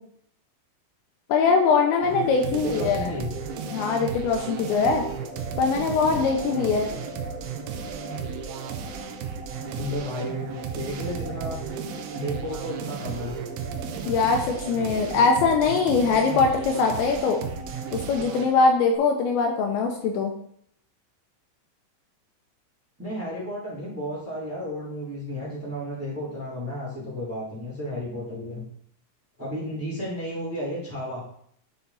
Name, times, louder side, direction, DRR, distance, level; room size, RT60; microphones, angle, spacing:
voice 1, 1.3-3.1 3.7-5.1 5.6-6.9 14.1-17.4 17.9-20.3, left 4 dB, 85° left, 3 dB, 2.7 m, -22 dB
sound 1, 1.3-19.0, right 2 dB, 65° right, 1.6 m, -40 dB
sound 2, 2.0-18.5, right 7 dB, 85° right, 2.5 m, -35 dB
voice 2, 2.4-3.3 6.0-6.1 9.7-11.6 12.1-13.4 23.0-28.6 29.4-31.2, equal, 15° right, -5 dB, 0.4 m, -33 dB
11.5 x 4.2 x 4.0 m, 0.67 s
omnidirectional pair, 5.8 m